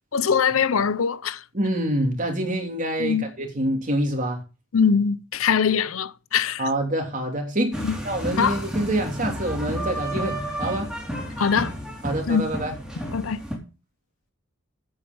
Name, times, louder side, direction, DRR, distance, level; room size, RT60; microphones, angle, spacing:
voice 1, 0.1-1.4 3.0-3.3 4.7-6.7 7.8-8.0 8.4-8.6 11.4-11.7 12.3-12.5 13.1-13.4, left 6 dB, 85° left, 0.6 m, -22 dB
voice 2, 1.5-4.4 6.6-10.9 12.0-12.7, right 1 dB, 40° right, 3.3 m, -26 dB
sound 1, 7.7-13.6, equal, 5° right, 3.8 m, -31 dB
8.9 x 8.8 x 5.4 m
head